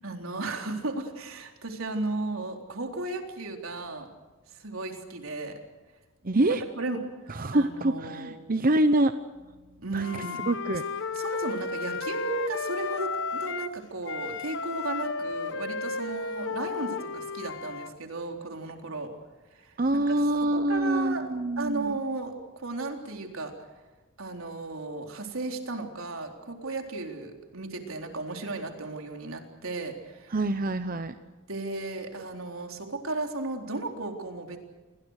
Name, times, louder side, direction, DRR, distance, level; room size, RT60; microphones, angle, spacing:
voice 1, 0.0-4.1 4.5-5.6 6.4-7.0 7.5-8.4 9.8-10.4 11.1-19.1 19.5-19.7 20.1-21.3 21.6-23.5 24.2-30.4 31.5-34.6, right 3 dB, 80° right, 3 dB, 3.9 m, -35 dB
voice 2, 6.2-6.6 7.3-9.1 9.9-10.0 10.5-10.8 19.8-22.0 30.3-31.1, right 1 dB, 45° right, 10 dB, 0.9 m, -25 dB
Wind instrument woodwind instrument, 10.0-13.8 14.1-17.9, left 4 dB, 60° left, 1.2 m, -33 dB
29.5 x 21.5 x 6.6 m, 1.3 s
head